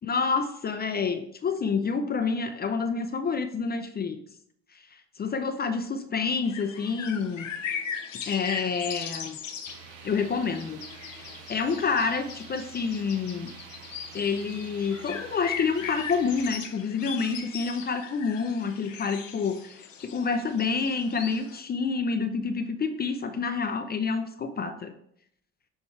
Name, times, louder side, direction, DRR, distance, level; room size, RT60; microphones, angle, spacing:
voice 1, 0.0-4.2 4.7-7.5 8.3-9.4 10.0-10.8 11.1-13.5 14.1-24.9, left 5 dB, 25° left, 7 dB, 0.6 m, -28 dB
sound 1, 6.4-21.6, left 7 dB, 90° left, 0.7 m, -39 dB
sound 2, 9.7-16.6, right 10 dB, 65° right, 0.7 m, -48 dB
7.1 x 3.5 x 4.4 m, 0.71 s
hypercardioid pair, 65°, 37 cm